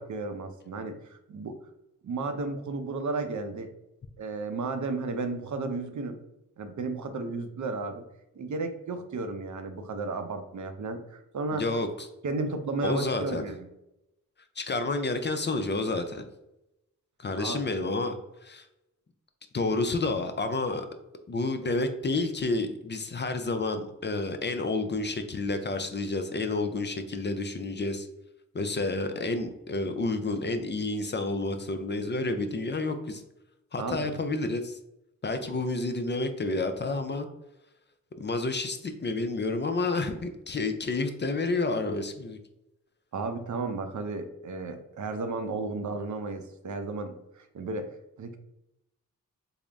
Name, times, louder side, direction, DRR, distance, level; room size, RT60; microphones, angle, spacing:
voice 1, 0.0-1.6 2.0-3.7 4.2-6.2 6.6-8.0 8.4-11.6 12.2-13.7 17.4-17.6 33.8-34.1 35.4-35.6 43.1-47.9 48.2-48.4, right 3 dB, 60° right, 8 dB, 0.6 m, -33 dB
voice 2, 11.5-12.1 12.8-13.4 14.6-16.2 17.2-18.2 18.4-18.7 19.5-20.9 21.3-28.1 28.5-33.2 33.7-34.8 35.2-37.3 38.2-42.4, left 3 dB, 35° left, 7 dB, 0.4 m, -30 dB
3.7 x 2.0 x 3.4 m, 0.90 s
cardioid pair, 60°, 34 cm